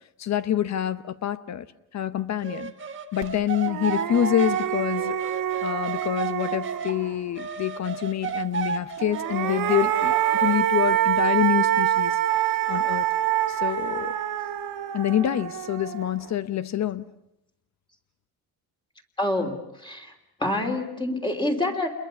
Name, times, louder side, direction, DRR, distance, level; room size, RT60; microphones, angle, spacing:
voice 1, 0.2-1.7 1.9-2.7 3.1-5.2 5.6-12.2 12.7-13.1 13.5-14.1 14.9-17.1, left 11 dB, 50° left, 1.0 m, -26 dB
sound 1, 2.4-7.0 7.4-10.5, right 6 dB, 35° right, 1.6 m, -33 dB
sound 2, 3.2-3.3 3.7-7.3 9.0-16.3, right 12 dB, 65° right, 1.7 m, -26 dB
voice 2, 19.2-20.1 20.4-21.9, left 1 dB, 15° left, 3.2 m, -27 dB
28.5 x 22.0 x 7.0 m
cardioid pair, 125°, 36 cm